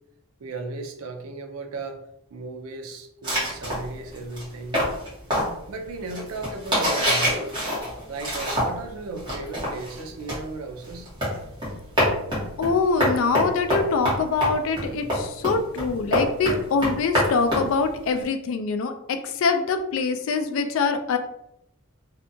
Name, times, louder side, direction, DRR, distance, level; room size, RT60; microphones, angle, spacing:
voice 1, 0.4-4.9 5.7-7.7 8.1-11.1, right 3 dB, 80° right, 5 dB, 0.4 m, -36 dB
sound 1, 3.2-8.9 9.2-18.2, equal, 20° right, 1.0 m, -26 dB
voice 2, 12.6-21.2, left 4 dB, 65° left, 8 dB, 0.3 m, -24 dB
2.7 x 2.2 x 2.6 m, 0.79 s
head